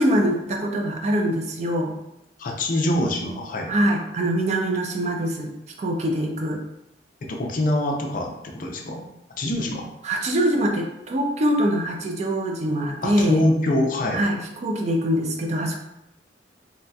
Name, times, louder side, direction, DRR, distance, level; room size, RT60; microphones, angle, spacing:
voice 1, 0.0-1.9 3.7-5.5 5.8-6.6 10.0-13.4 14.1-15.8, equal, 40° right, 2 dB, 0.4 m, -23 dB
voice 2, 2.4-3.7 7.2-9.1 9.4-9.9 13.0-14.2, left 1 dB, 45° left, 1 dB, 0.4 m, -24 dB
2.9 x 2.7 x 2.2 m, 0.86 s
head